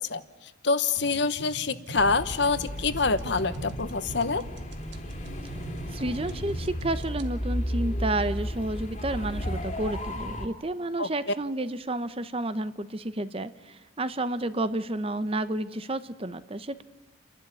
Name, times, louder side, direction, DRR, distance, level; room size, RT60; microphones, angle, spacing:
voice 1, 0.0-4.4 11.0-11.1, left 4 dB, 55° left, 12 dB, 1.0 m, -26 dB
sound 1, 1.0-7.3, right 2 dB, 55° right, 1.6 m, -42 dB
sound 2, 2.0-10.5, equal, 35° left, 2.3 m, -34 dB
voice 2, 5.9-16.8, right 1 dB, 30° right, 12 dB, 0.8 m, -31 dB
29.5 x 12.0 x 9.7 m, 1.2 s
head